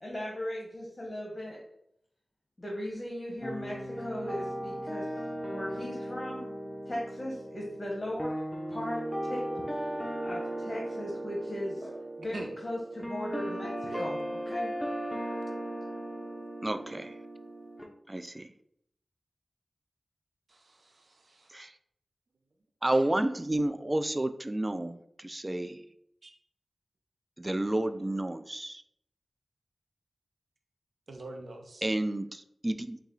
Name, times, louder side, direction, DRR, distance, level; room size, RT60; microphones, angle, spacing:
voice 1, 0.0-1.6 2.6-5.1 5.5-6.5 6.9-8.3 8.7-9.4 10.2-14.2 14.5-14.7, left 1 dB, 35° left, -3 dB, 1.0 m, -37 dB
sound 1, 3.4-17.8, right 1 dB, 10° left, 0.8 m, -37 dB
voice 2, 16.6-17.2 18.1-18.5 21.5-21.7 22.8-25.8 27.4-28.8 31.8-33.0, right 1 dB, 30° right, 10 dB, 0.3 m, -31 dB
voice 3, 20.5-21.5 26.2-26.3 31.1-31.8, right 2 dB, 75° right, 3 dB, 0.6 m, -44 dB
4.0 x 2.3 x 3.7 m, 0.72 s
cardioid pair, 40°, 0 cm